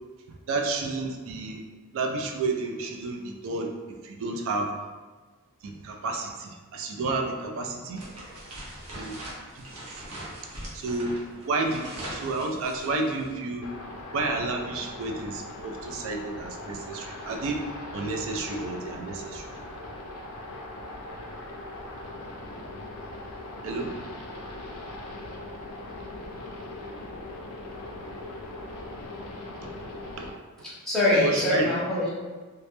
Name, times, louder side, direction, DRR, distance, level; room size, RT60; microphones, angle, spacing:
voice 1, 0.5-1.6 1.9-3.7 4.0-4.7 5.6-8.1 8.9-9.7 10.7-13.7 14.1-17.6 17.9-19.5 23.6-24.0 29.6-29.7 30.2-30.3 31.1-31.7, right 3 dB, 60° right, 3 dB, 0.3 m, -31 dB
sound 1, 7.9-13.4, right 1 dB, 85° right, 0.7 m, -41 dB
sound 2, 13.6-30.3, left 1 dB, 75° left, 0.4 m, -40 dB
voice 2, 30.6-32.1, left 2 dB, ahead, -9 dB, 0.6 m, -24 dB
2.2 x 2.1 x 2.8 m, 1.4 s
head